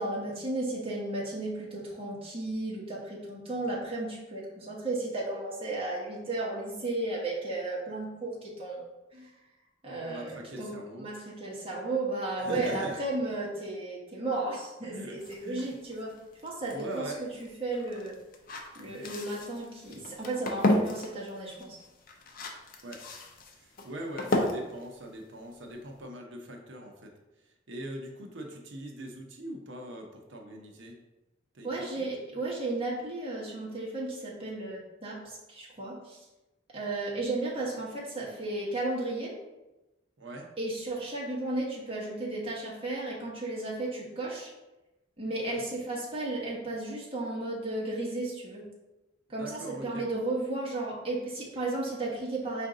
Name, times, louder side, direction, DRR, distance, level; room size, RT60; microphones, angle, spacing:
voice 1, 0.0-9.3 9.8-10.7 11.0-16.1 16.4-17.1 17.4-18.2 18.7-21.8 31.6-36.2 36.7-39.3 40.6-44.5 45.2-48.7 49.3-52.7, right 2 dB, 30° right, -4 dB, 1.2 m, -34 dB
voice 2, 10.0-11.1 12.4-13.0 14.8-15.7 16.7-17.2 22.8-23.0 23.5-27.1 27.7-31.0 31.5-32.1 40.2-40.5 45.4-45.6 49.3-50.0, right 1 dB, 75° right, 2 dB, 0.8 m, -41 dB
sound 1, 15.2-26.1, left 1 dB, 50° left, 0.5 m, -34 dB
4.6 x 2.5 x 3.8 m, 1.0 s
head